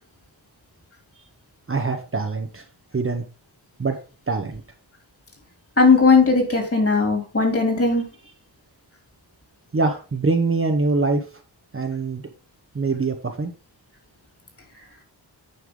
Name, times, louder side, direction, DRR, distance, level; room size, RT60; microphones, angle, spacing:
voice 1, 1.7-2.6 2.9-3.2 3.8-4.0 4.3-4.6 9.7-11.2 11.7-12.2 12.7-13.5, right 3 dB, 30° right, 4 dB, 1.0 m, -23 dB
voice 2, 5.8-8.0, left 4 dB, 30° left, 2 dB, 3.4 m, -17 dB
9.5 x 5.6 x 3.8 m, 0.32 s
wide cardioid pair, 145°, 42 cm